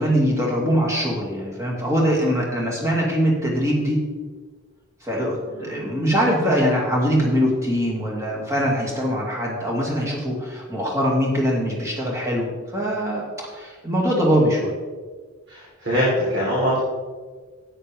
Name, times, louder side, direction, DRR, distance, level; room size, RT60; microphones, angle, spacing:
voice 1, 0.0-4.0 5.0-13.2 13.5-14.8, equal, 15° right, -3 dB, 2.4 m, -22 dB
voice 2, 5.5-5.8 15.5-16.8, equal, 60° right, -7 dB, 3.7 m, -23 dB
12.5 x 9.5 x 3.5 m, 1.5 s
head